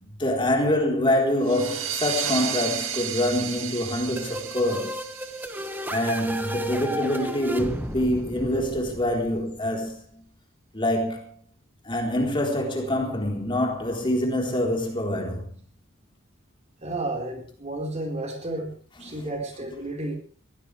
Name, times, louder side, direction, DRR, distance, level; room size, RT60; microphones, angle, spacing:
voice 1, 0.0-5.0 5.9-10.2 10.7-11.3 11.8-15.5 18.9-19.2 19.6-19.7, left 1 dB, 25° left, 4.2 m, -25 dB
sound 1, 1.4-6.7, right 9 dB, 70° right, 2.2 m, -33 dB
sound 2, 4.2-9.8, right 1 dB, 10° right, 1.8 m, -34 dB
voice 2, 16.8-20.2, right 2 dB, 35° right, 4.8 m, -32 dB
22.5 x 16.5 x 3.5 m
head